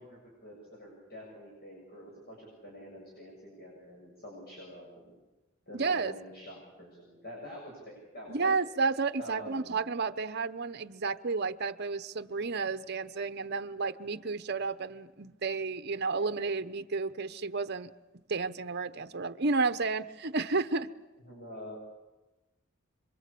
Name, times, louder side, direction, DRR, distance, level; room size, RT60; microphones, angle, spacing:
voice 1, 0.0-5.1 5.7-8.6 9.2-9.8 21.2-21.8, equal, 50° left, -2 dB, 7.5 m, -47 dB
voice 2, 5.7-6.1 8.3-17.9 18.3-20.9, right 4 dB, 55° right, 11 dB, 0.9 m, -31 dB
26.5 x 24.0 x 8.5 m, 1.1 s
head